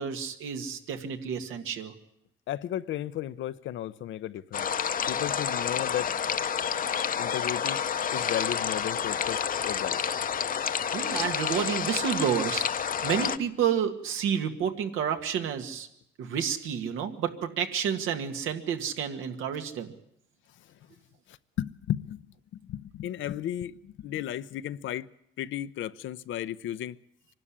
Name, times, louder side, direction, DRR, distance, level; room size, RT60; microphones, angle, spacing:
voice 1, 0.0-1.9 10.9-15.9 16.2-19.9, right 8 dB, 90° right, 2.0 m, -30 dB
voice 2, 2.5-4.7 5.1-6.1 7.2-7.8 8.1-10.0 21.3-22.3 22.5-25.1 25.4-27.0, left 12 dB, 75° left, 0.7 m, -34 dB
sound 1, 4.5-13.4, left 7 dB, 45° left, 0.8 m, -29 dB
24.5 x 12.5 x 10.0 m
cardioid pair, 90°, 20 cm